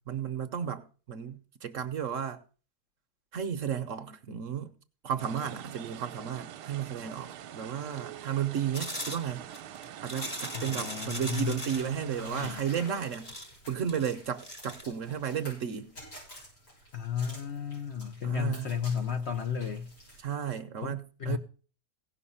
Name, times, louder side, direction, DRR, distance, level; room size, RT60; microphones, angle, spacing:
voice 1, 0.1-2.4 3.3-4.7 5.0-9.5 10.0-13.3 13.7-15.9 18.2-18.7 20.2-21.4, right 8 dB, 60° right, 1.0 m, -33 dB
sound 1, 5.2-12.6, right 10 dB, 80° right, 1.3 m, -45 dB
sound 2, 8.7-11.9 12.6-14.8, equal, 20° left, 1.2 m, -39 dB
voice 2, 10.5-12.6 16.9-19.9 20.8-21.4, left 7 dB, 55° left, 0.9 m, -34 dB
sound 3, 11.7-20.2, equal, 85° left, 7.6 m, -50 dB
17.0 x 5.7 x 5.6 m
omnidirectional pair, 1.7 m